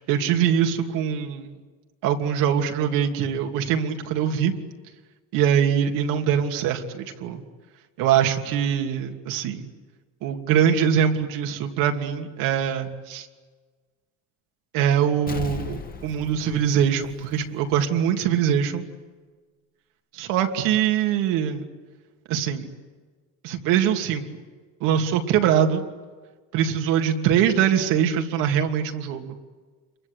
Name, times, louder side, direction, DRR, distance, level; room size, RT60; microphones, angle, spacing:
voice 1, 0.0-1.6 2.0-4.5 5.3-7.4 8.0-9.7 10.2-13.3 14.7-18.8 20.1-21.6 22.3-22.7 23.4-24.3 24.8-25.8 26.5-29.4, right 8 dB, 80° right, 4 dB, 2.9 m, -23 dB
Explosion, 15.3-17.9 18.2-18.3, left 5 dB, 25° left, 2.2 m, -37 dB
28.0 x 23.0 x 8.2 m, 1.4 s
cardioid pair, 120°, 32 cm